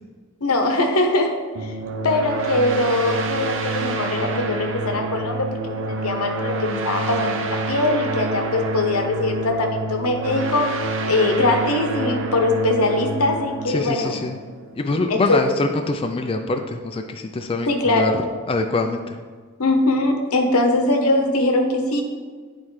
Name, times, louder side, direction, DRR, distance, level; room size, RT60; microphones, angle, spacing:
voice 1, 0.4-1.3 1.6-1.8 2.0-14.2 15.1-15.4 17.7-18.3 19.6-22.0, left 2 dB, 85° left, 4 dB, 0.9 m, -21 dB
sound 1, 1.5-14.9, right 2 dB, 65° right, 0.6 m, -27 dB
voice 2, 13.7-14.4 14.7-18.1 18.5-19.2, left 3 dB, 25° left, 5 dB, 0.3 m, -24 dB
9.6 x 4.2 x 3.2 m, 1.5 s
head